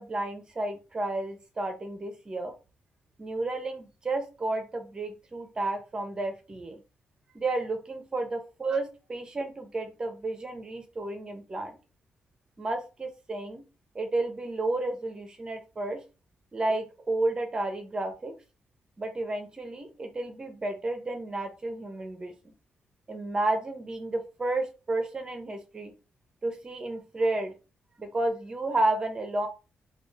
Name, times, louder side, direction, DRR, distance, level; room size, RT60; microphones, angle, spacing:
voice 1, 0.0-2.5 3.2-6.8 7.3-11.8 12.6-13.6 13.9-16.0 16.5-18.4 19.0-22.5 23.1-25.9 26.4-27.6 28.0-29.5, right 2 dB, 20° right, 6 dB, 0.7 m, -31 dB
3.3 x 2.3 x 3.3 m, 0.31 s
wide cardioid pair, 175°, 4 cm